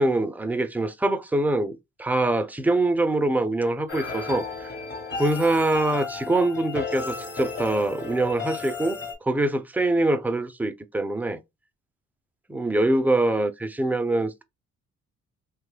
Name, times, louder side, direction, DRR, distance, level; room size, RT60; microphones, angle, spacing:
voice 1, 0.0-4.7 5.2-11.4 12.5-14.4, right 2 dB, 5° right, 0.4 m, -24 dB
sound 1, 3.9-9.1, left 4 dB, 35° left, 1.0 m, -34 dB
3.0 x 2.2 x 3.1 m
cardioid pair, 90°, 30 cm